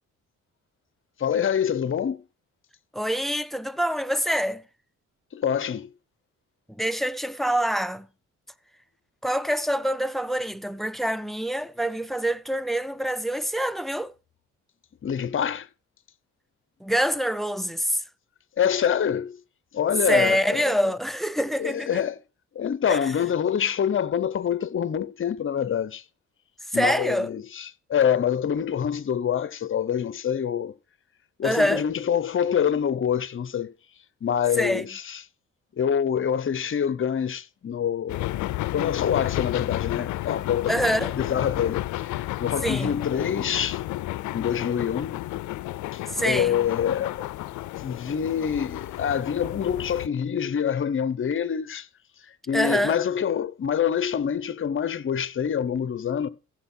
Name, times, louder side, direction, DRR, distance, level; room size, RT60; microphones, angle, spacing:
voice 1, 1.2-2.2 5.3-5.9 15.0-15.7 18.6-19.4 19.7-20.7 21.6-22.2 22.5-26.0 26.7-30.7 31.4-33.7 34.2-35.2 35.8-38.4 38.7-40.8 41.2-43.8 44.3-45.2 45.9-47.3 47.8-51.9 52.3-56.3, left 8 dB, 40° left, 0.9 m, -26 dB
voice 2, 2.9-4.6 6.7-8.1 9.2-14.1 16.8-18.0 20.1-22.0 22.9-23.1 26.7-27.3 31.4-31.9 34.6-34.9 40.7-41.2 42.6-43.0 46.1-46.6 52.5-53.0, equal, ahead, 0.5 m, -25 dB
sound 1, 38.1-50.1, left 16 dB, 75° left, 0.5 m, -32 dB
15.0 x 6.2 x 4.4 m
cardioid pair, 90°, 30 cm